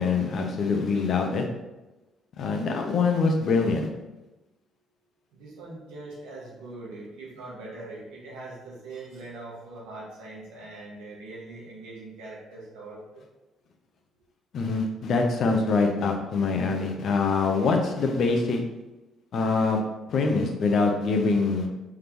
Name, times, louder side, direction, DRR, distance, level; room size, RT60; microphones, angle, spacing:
voice 1, 0.0-1.5 2.4-3.9 14.5-18.6 19.3-19.8 20.1-21.7, left 4 dB, 60° left, 3 dB, 0.7 m, -24 dB
voice 2, 5.3-13.2, right 2 dB, 80° right, -4 dB, 1.2 m, -42 dB
3.6 x 3.5 x 3.0 m, 1.0 s
hypercardioid pair, 55°, 0 cm